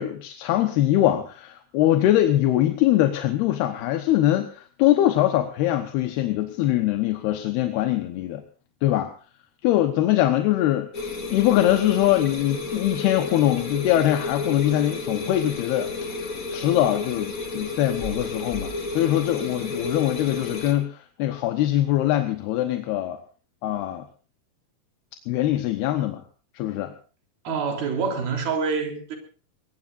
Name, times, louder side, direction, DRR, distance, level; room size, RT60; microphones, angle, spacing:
voice 1, 0.0-8.4 8.8-9.1 9.6-10.9 11.3-15.9 16.5-23.2 23.6-24.1 25.3-26.2 26.5-26.9, left 13 dB, 85° left, 3.1 m, -22 dB
sound 1, 10.9-20.7, left 3 dB, 30° left, 1.7 m, -32 dB
voice 2, 27.5-29.2, right 5 dB, 70° right, 5.3 m, -26 dB
22.0 x 21.0 x 2.6 m
omnidirectional pair, 4.5 m